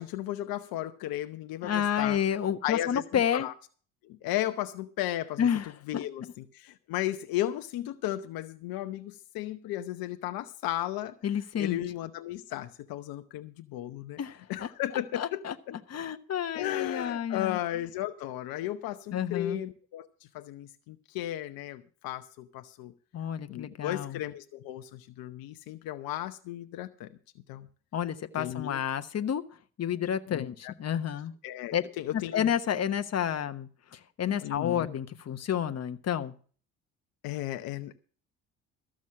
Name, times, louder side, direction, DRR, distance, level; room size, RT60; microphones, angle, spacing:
voice 1, 0.0-2.2 2.6-3.5 4.1-5.5 5.9-11.2 11.6-14.2 14.5-15.4 16.5-20.1 20.3-22.9 23.5-27.1 27.5-27.7 28.4-28.8 30.3-31.0 31.4-32.5 34.4-34.9 37.2-37.9, left 13 dB, 70° left, 9 dB, 0.9 m, -35 dB
voice 2, 1.6-3.5 5.4-6.3 11.2-11.8 14.2-14.7 15.1-17.6 19.1-19.6 23.1-24.2 27.9-29.4 29.8-31.3 31.7-31.8 32.1-36.3, left 9 dB, 45° left, 9 dB, 1.2 m, -30 dB
14.0 x 6.3 x 7.4 m, 0.42 s
supercardioid pair, 65°, 36 cm